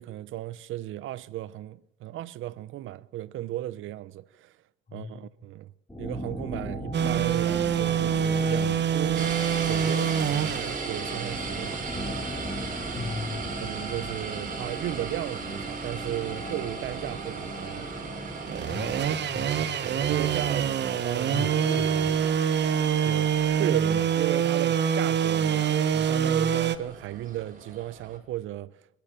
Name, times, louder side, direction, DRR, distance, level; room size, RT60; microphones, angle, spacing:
voice 1, 0.0-4.6 4.9-5.7 6.0-9.4 9.6-11.8 13.4-17.9 19.8-20.7 21.0-21.5 23.0-29.0, right 14 dB, 85° right, 0.8 m, -35 dB
voice 2, 4.9-5.3 12.9-13.5 18.7-20.4 21.3-22.3, left 3 dB, 35° left, 7.9 m, -38 dB
sound 1, 5.9-19.2, equal, 10° left, 7.4 m, -38 dB
sound 2, 6.9-26.8, right 8 dB, 60° right, 1.5 m, -27 dB
sound 3, 9.1-28.2, right 4 dB, 45° right, 6.2 m, -39 dB
28.5 x 12.5 x 7.4 m
cardioid pair, 90°, 20 cm